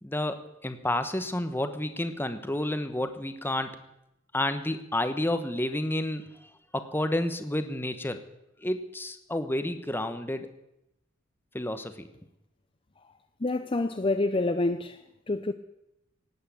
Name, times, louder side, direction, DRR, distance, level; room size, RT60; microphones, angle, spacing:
voice 1, 0.0-3.8 4.3-8.2 8.6-10.5 11.5-12.1, left 1 dB, 10° left, 1.0 m, -30 dB
voice 2, 13.4-15.0 15.3-15.5, left 2 dB, 25° left, 0.6 m, -27 dB
18.5 x 8.5 x 8.4 m
head